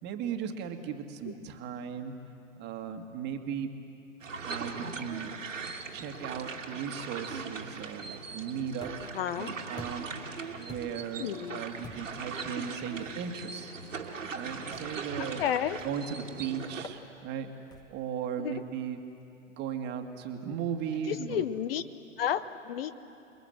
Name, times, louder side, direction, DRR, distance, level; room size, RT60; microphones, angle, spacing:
voice 1, 0.0-2.2 2.6-3.7 4.5-5.3 5.9-9.1 9.4-10.1 10.6-13.7 14.3-15.5 15.8-17.5 17.9-19.0 19.5-21.5, right 7 dB, 30° right, 5 dB, 1.8 m, -37 dB
sound 1, 4.2-16.8, right 5 dB, 80° right, 2.3 m, -40 dB
sound 2, 8.8-9.2 9.8-10.2 10.7-11.1 11.8-12.3 13.0-13.2 14.7-15.1 15.8-16.1 16.8-17.0 17.7-18.1, left 1 dB, 10° left, 1.3 m, -48 dB
voice 2, 9.1-9.5 11.2-11.6 15.4-15.8 18.4-18.5 21.1-21.8 22.2-22.9, left 9 dB, 50° left, 14 dB, 0.9 m, -31 dB
28.5 x 21.5 x 7.8 m, 2.8 s
hypercardioid pair, 120°, 38 cm